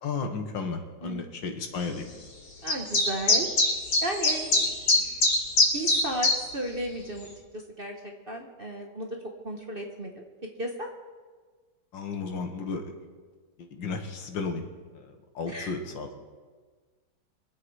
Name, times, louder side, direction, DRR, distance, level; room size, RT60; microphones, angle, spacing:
voice 1, 0.0-2.1 11.9-12.8 13.6-14.7 14.9-16.1, left 4 dB, 70° left, 5 dB, 2.1 m, -33 dB
voice 2, 2.6-3.5 4.0-5.1 5.7-9.2 9.4-10.2 10.6-10.9 15.5-15.8, right 1 dB, 35° right, 2 dB, 1.1 m, -35 dB
sound 1, 2.7-6.4, left 2 dB, 85° left, 3.5 m, -22 dB
24.0 x 8.2 x 4.8 m, 1.4 s
omnidirectional pair, 2.1 m